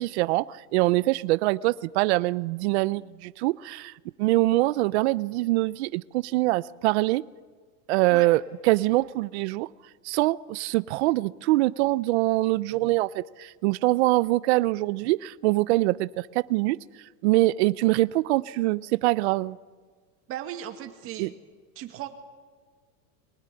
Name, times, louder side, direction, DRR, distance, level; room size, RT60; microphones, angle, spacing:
voice 1, 0.0-3.9 4.2-7.2 7.9-8.4 8.7-9.7 10.0-16.8 17.2-19.6 21.2-21.3, right 19 dB, 50° right, 18 dB, 0.6 m, -24 dB
voice 2, 20.3-21.3 21.8-22.1, right 11 dB, 30° right, 6 dB, 2.0 m, -36 dB
23.5 x 19.5 x 9.8 m, 1.5 s
supercardioid pair, 165°, 44 cm